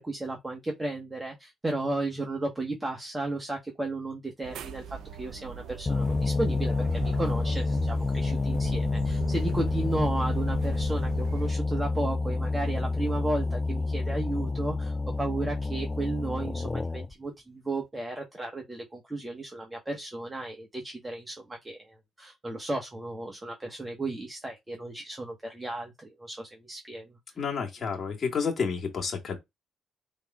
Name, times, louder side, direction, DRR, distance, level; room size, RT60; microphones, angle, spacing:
voice 1, 0.0-27.1, right 2 dB, 20° right, 1.4 m, -34 dB
sound 1, 4.4-11.5, right 6 dB, 75° right, 0.6 m, -40 dB
sound 2, 5.9-17.1, left 3 dB, 25° left, 0.4 m, -28 dB
voice 2, 27.4-29.4, left 5 dB, 45° left, 2.0 m, -30 dB
5.4 x 3.4 x 2.5 m
supercardioid pair, 65°, 0 cm